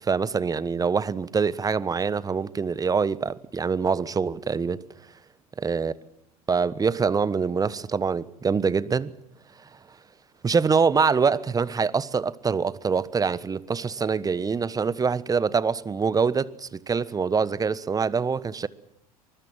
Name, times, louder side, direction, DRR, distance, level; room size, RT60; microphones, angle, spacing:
voice 1, 0.0-4.8 5.6-5.9 6.5-9.1 10.4-18.7, right 5 dB, 20° right, 1.2 m, -24 dB
24.0 x 21.5 x 7.6 m
figure-of-eight pair, 75°, 19 cm